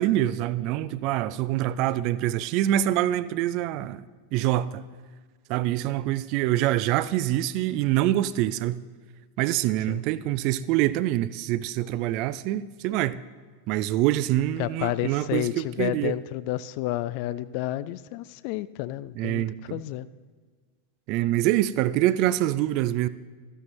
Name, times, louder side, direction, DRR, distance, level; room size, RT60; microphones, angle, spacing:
voice 1, 0.0-4.0 4.3-4.8 5.5-8.8 9.4-13.2 13.7-16.1 19.2-19.8 21.1-23.1, right 14 dB, 40° right, 0.3 m, -25 dB
voice 2, 14.6-19.4 19.7-20.1, left 15 dB, 45° left, 0.3 m, -30 dB
13.5 x 9.8 x 3.2 m
figure-of-eight pair, 90°, 0 cm